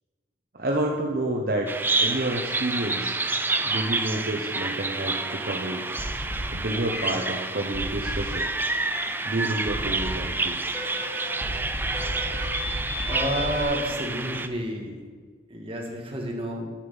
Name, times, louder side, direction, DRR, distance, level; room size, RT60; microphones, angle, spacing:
voice 1, 0.5-1.7 2.0-3.2 3.6-5.8 6.5-8.5 9.2-10.6, right 1 dB, 55° right, 1 dB, 0.9 m, -29 dB
Bird vocalization bird call bird song, 1.7-14.5, right 3 dB, 10° right, 0.4 m, -29 dB
sound 1, 6.0-6.6 6.9-7.2 7.7-8.3 8.9-9.2 9.7-10.3 10.7-13.6, left 1 dB, 5° left, 2.6 m, -32 dB
voice 2, 13.0-15.0 15.5-16.7, equal, 30° right, -1 dB, 1.7 m, -30 dB
10.0 x 8.0 x 5.5 m, 1.5 s
head